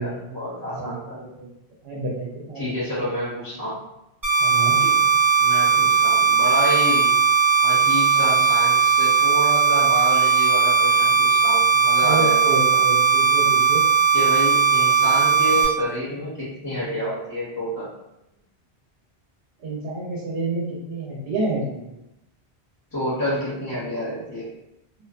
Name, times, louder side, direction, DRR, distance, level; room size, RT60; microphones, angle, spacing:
voice 1, 0.0-1.2 2.6-3.7 4.8-5.1 5.4-7.2 7.6-12.8 14.1-17.9 22.9-24.5, equal, 25° left, -8 dB, 0.6 m, -29 dB
voice 2, 0.6-1.5 1.8-2.6 2.9-3.0 4.4-4.8 8.2-8.4 12.0-13.8 19.6-21.9, right 2 dB, 75° right, -6 dB, 0.9 m, -29 dB
sound 1, 4.2-15.6, right 5 dB, 20° right, 0.8 m, -18 dB
2.5 x 2.2 x 2.4 m, 0.88 s
omnidirectional pair, 1.1 m